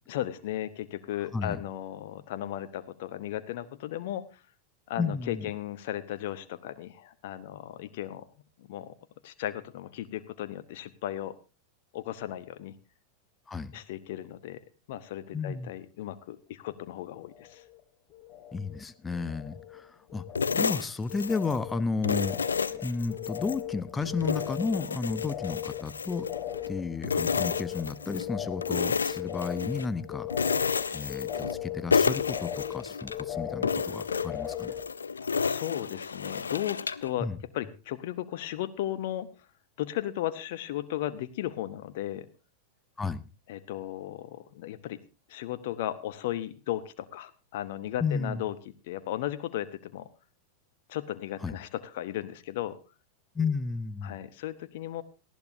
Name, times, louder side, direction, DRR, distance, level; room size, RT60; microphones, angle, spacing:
voice 1, 0.1-4.3 4.9-8.3 8.6-8.9 9.2-11.3 11.9-12.7 13.7-14.6 14.9-17.6 35.4-37.3 37.5-39.3 39.8-42.3 43.5-45.0 45.3-48.5 48.8-50.1 50.9-52.8 54.0-55.0, left 13 dB, 50° left, 13 dB, 0.9 m, -35 dB
voice 2, 5.0-5.4 13.5-13.7 15.3-15.7 18.5-20.2 20.5-22.4 22.7-26.3 26.7-30.3 30.9-34.8 37.2-37.4 43.0-43.3 48.0-48.4 51.4-51.5 53.3-54.2, left 4 dB, 15° left, 14 dB, 0.8 m, -33 dB
sound 1, 17.3-17.8 18.1-18.8 19.1-34.9, left 12 dB, 35° left, 2.2 m, -38 dB
sound 2, 20.4-21.6 22.0-23.6 24.0-26.7 27.0-28.3 28.6-29.9 30.3-31.6 31.9-33.2 33.6-37.1, left 5 dB, 75° left, 0.6 m, -31 dB
18.5 x 13.5 x 2.7 m, 0.31 s
figure-of-eight pair, 90°, 0 cm